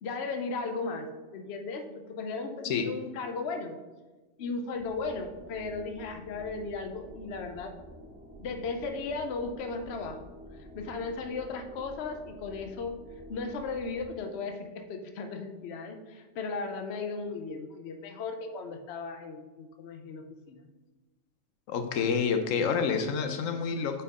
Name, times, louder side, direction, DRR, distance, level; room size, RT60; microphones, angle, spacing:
voice 1, 0.0-3.8 4.4-7.7 8.4-13.0 13.3-20.7, left 4 dB, 60° left, 5 dB, 0.9 m, -36 dB
voice 2, 2.6-2.9 21.7-24.0, left 6 dB, 85° left, 7 dB, 1.0 m, -28 dB
sound 1, 4.7-14.0, equal, 5° right, 1.1 m, -50 dB
8.5 x 4.7 x 3.6 m, 1.2 s
omnidirectional pair, 1.3 m